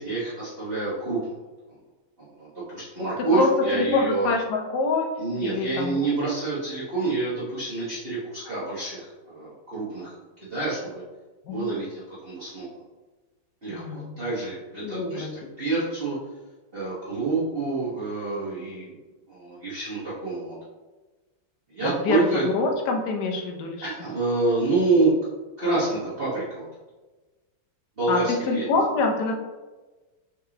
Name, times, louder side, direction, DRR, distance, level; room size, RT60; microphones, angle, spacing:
voice 1, 0.0-1.3 2.2-4.3 5.2-11.0 11.5-12.8 13.6-15.3 15.6-16.2 16.7-18.9 19.3-20.6 21.7-22.5 23.8-25.1 25.6-26.7 28.0-28.6, right 3 dB, 35° right, -10 dB, 1.2 m, -27 dB
voice 2, 3.3-5.1 5.4-6.1 11.5-11.7 13.7-14.2 14.8-15.3 22.1-23.9 28.1-29.3, left 3 dB, 70° left, 3 dB, 1.1 m, -26 dB
4.9 x 3.4 x 2.8 m, 1.2 s
omnidirectional pair, 2.2 m